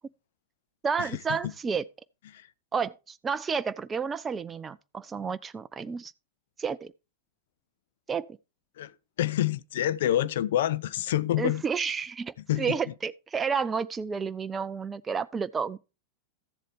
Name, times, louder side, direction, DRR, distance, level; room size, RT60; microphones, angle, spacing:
voice 1, 0.8-1.8 2.7-6.1 6.6-6.9 8.1-8.4 11.4-15.8, right 6 dB, 20° right, 0.4 m, -31 dB
voice 2, 8.8-11.6 12.5-12.9, left 12 dB, 55° left, 0.6 m, -27 dB
14.0 x 7.5 x 3.5 m
figure-of-eight pair, 90°, 0 cm